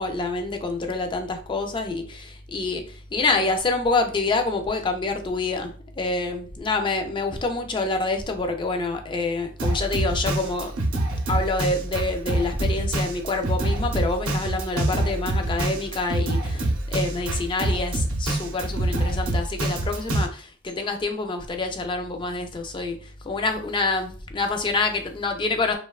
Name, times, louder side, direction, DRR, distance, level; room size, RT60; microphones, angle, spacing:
voice 1, 0.0-10.7 11.3-23.0 23.2-25.8, left 3 dB, 25° left, 4 dB, 0.3 m, -27 dB
Drum kit, 9.6-20.3, right 1 dB, 85° right, 0.6 m, -26 dB
2.8 x 2.1 x 2.3 m, 0.41 s
head